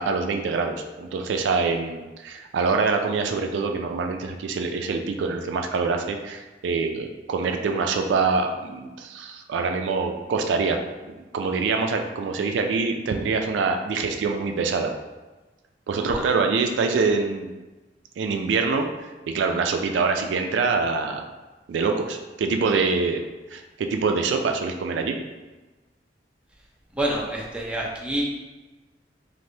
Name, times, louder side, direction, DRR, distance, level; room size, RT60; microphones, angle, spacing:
voice 1, 0.0-10.8 11.3-14.9 15.9-17.5 18.2-18.9 19.3-21.2 21.7-23.2 23.5-25.2, right 4 dB, 90° right, 4 dB, 0.3 m, -25 dB
voice 2, 26.9-28.2, right 1 dB, 5° right, -3 dB, 0.5 m, -27 dB
3.2 x 2.6 x 2.7 m, 1.2 s
head